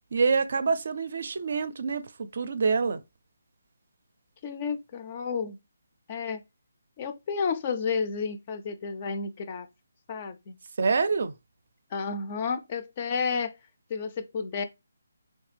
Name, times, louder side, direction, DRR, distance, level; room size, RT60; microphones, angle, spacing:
voice 1, 0.1-3.0 10.8-11.3, right 4 dB, 55° right, 0.4 m, -26 dB
voice 2, 4.4-5.6 6.1-6.4 7.0-9.7 10.1-10.6 11.9-13.5 13.9-14.6, left 5 dB, 30° left, 0.4 m, -31 dB
3.2 x 3.2 x 3.3 m
hypercardioid pair, 165°, 0 cm